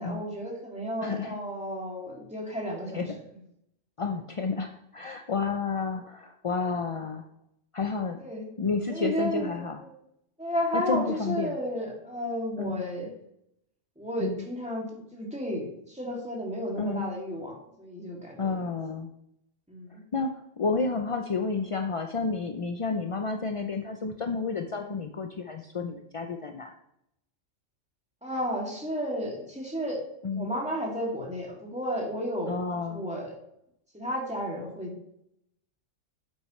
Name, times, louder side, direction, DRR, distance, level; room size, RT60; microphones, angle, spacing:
voice 1, 0.0-3.0 8.2-8.5 8.9-9.9 10.4-13.1 14.0-18.6 19.7-20.0 24.7-24.9 28.2-30.0 30.3-33.4 33.9-35.2, equal, 5° right, -3 dB, 2.5 m, -33 dB
voice 2, 1.0-1.4 2.9-3.1 4.0-7.2 7.7-8.2 8.6-9.8 10.7-11.5 12.6-12.8 14.2-14.4 16.8-17.1 18.4-19.1 20.1-26.7 30.2-30.5 32.5-33.0, left 4 dB, 45° left, 5 dB, 0.4 m, -30 dB
9.9 x 8.1 x 3.2 m, 0.77 s
omnidirectional pair, 1.3 m